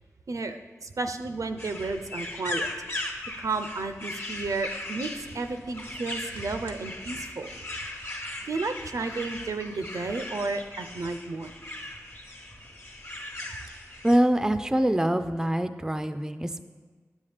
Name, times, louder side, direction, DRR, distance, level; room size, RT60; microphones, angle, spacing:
voice 1, 0.3-2.7 3.4-7.5 8.4-11.5, right 3 dB, 75° right, 8 dB, 0.5 m, -32 dB
sound 1, 1.6-14.2, left 1 dB, 45° left, 1.0 m, -38 dB
voice 2, 14.0-16.6, right 1 dB, 10° right, 10 dB, 0.4 m, -24 dB
9.6 x 7.1 x 3.3 m, 1.4 s
wide cardioid pair, 55°, 6 cm